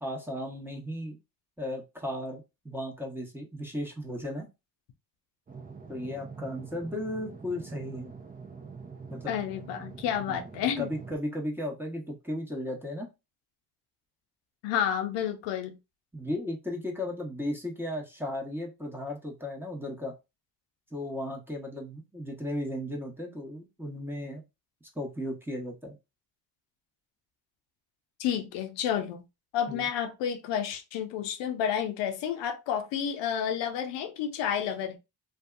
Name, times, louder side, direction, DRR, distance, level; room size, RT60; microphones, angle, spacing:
voice 1, 0.0-1.2 1.6-4.5 5.9-8.1 9.1-9.3 10.2-10.4 10.8-13.1 16.1-20.1 20.9-24.4 24.9-25.9 29.7-29.9, left 1 dB, 5° right, 1.0 m, -35 dB
sound 1, 5.5-11.2, right 5 dB, 20° right, 0.6 m, -45 dB
voice 2, 9.3-10.9 14.6-15.8 28.2-29.2 29.5-35.0, left 9 dB, 80° left, 0.6 m, -30 dB
2.6 x 2.3 x 2.3 m
supercardioid pair, 65°, 42 cm